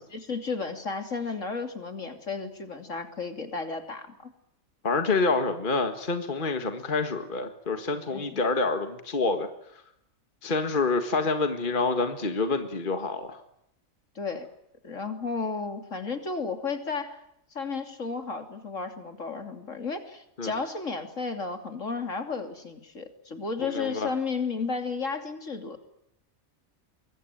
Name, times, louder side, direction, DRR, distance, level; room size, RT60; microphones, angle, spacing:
voice 1, 0.1-4.3 8.1-8.4 14.1-14.5 14.8-17.2 17.5-25.8, left 4 dB, 65° left, 6 dB, 3.3 m, -33 dB
voice 2, 4.8-9.5 10.4-13.4 20.4-20.5 23.6-24.1, left 3 dB, 40° left, 7 dB, 1.8 m, -27 dB
25.0 x 22.5 x 9.2 m, 0.80 s
omnidirectional pair, 1.4 m